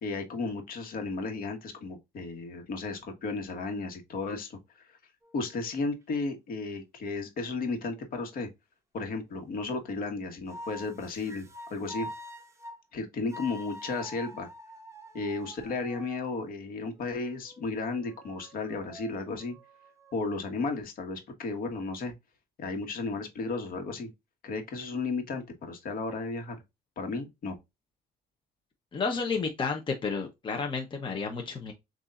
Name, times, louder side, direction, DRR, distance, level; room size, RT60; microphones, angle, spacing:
voice 1, 0.0-5.0 5.3-8.5 8.9-12.1 12.9-14.5 15.1-19.6 20.1-22.1 22.6-24.1 24.4-26.6 27.0-27.5, left 3 dB, 60° left, 1.4 m, -34 dB
sound 1, 5.2-5.9 10.5-12.8 13.3-16.3 17.0-20.2, equal, 15° right, 0.8 m, -46 dB
voice 2, 28.9-31.7, left 5 dB, 30° left, 0.9 m, -31 dB
6.7 x 2.7 x 2.5 m
cardioid pair, 110°, 17 cm